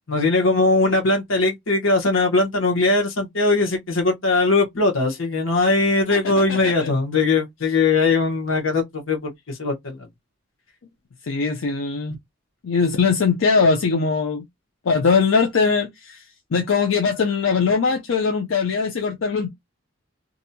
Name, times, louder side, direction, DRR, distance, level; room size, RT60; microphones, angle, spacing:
voice 1, 0.1-10.0, left 3 dB, 70° left, 1.0 m, -20 dB
voice 2, 6.1-6.9 11.2-12.2 12.6-14.4 14.8-16.2 16.5-19.5, left 5 dB, 90° left, 0.5 m, -21 dB
2.6 x 2.2 x 2.7 m
head